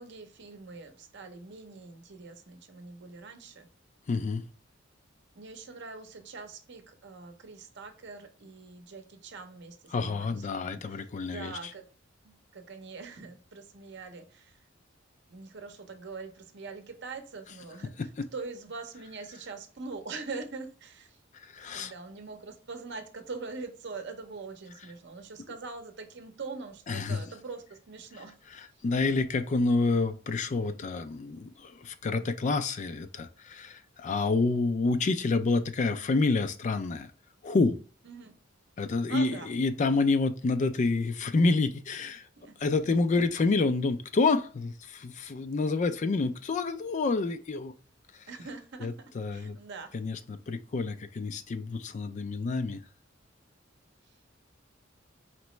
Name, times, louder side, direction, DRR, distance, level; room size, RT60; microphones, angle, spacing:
voice 1, 0.0-3.7 5.3-11.9 12.2-14.6 15.3-21.2 21.7-28.4 38.0-38.3 39.1-39.5 42.4-42.6 48.3-50.1, right 4 dB, 65° right, 0.7 m, -43 dB
voice 2, 4.1-4.4 9.9-11.5 18.0-18.3 21.5-21.9 26.9-27.2 28.8-37.1 37.4-37.8 38.8-42.3 42.6-47.7 48.8-49.6 49.9-52.8, left 3 dB, 40° left, 0.4 m, -28 dB
4.5 x 3.0 x 3.1 m
head